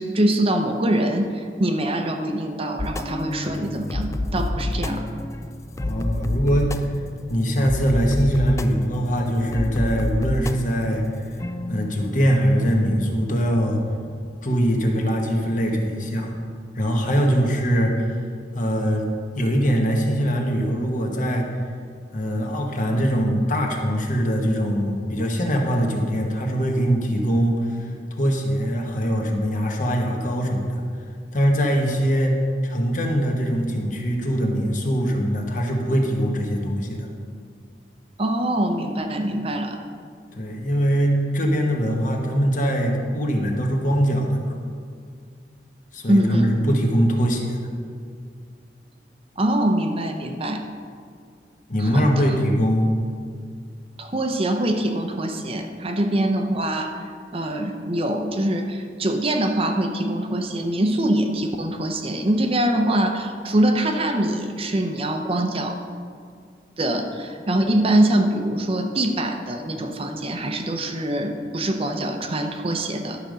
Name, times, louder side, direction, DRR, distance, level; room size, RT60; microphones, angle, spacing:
voice 1, 0.0-5.0 38.2-39.8 46.1-46.5 49.4-50.6 51.8-52.3 54.0-57.0 57.3-65.8 66.8-73.2, right 1 dB, 30° right, 4 dB, 0.7 m, -23 dB
sound 1, 2.8-15.4, left 1 dB, 15° left, 0.3 m, -30 dB
voice 2, 5.8-6.9 7.3-11.0 11.7-13.8 14.4-16.3 16.7-18.2 18.5-19.1 19.3-21.5 22.1-27.8 28.1-30.8 31.3-37.1 40.3-44.6 45.9-47.6 51.7-52.9, equal, 45° left, 1 dB, 1.3 m, -22 dB
11.5 x 5.2 x 6.3 m, 2.1 s
head